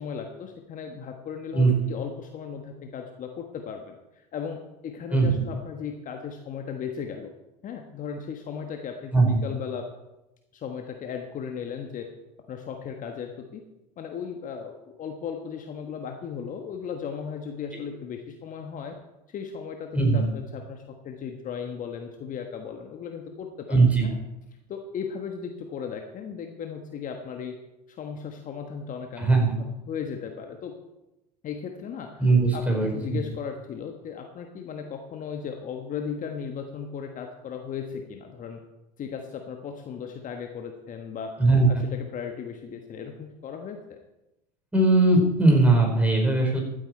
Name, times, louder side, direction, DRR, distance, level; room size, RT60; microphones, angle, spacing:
voice 1, 0.0-7.3 7.6-9.9 10.5-12.1 12.5-13.6 14.0-19.0 19.3-24.1 24.7-27.6 27.9-29.3 29.6-30.8 31.4-32.2 32.5-38.6 39.0-41.3 41.7-44.0, left 7 dB, 40° left, 4 dB, 1.3 m, -36 dB
voice 2, 19.9-20.2 23.7-24.1 29.2-29.5 32.2-33.2 41.4-41.7 44.7-46.6, right 2 dB, 5° right, 0 dB, 4.5 m, -20 dB
14.0 x 8.9 x 4.4 m, 0.97 s
hypercardioid pair, 75°, 21 cm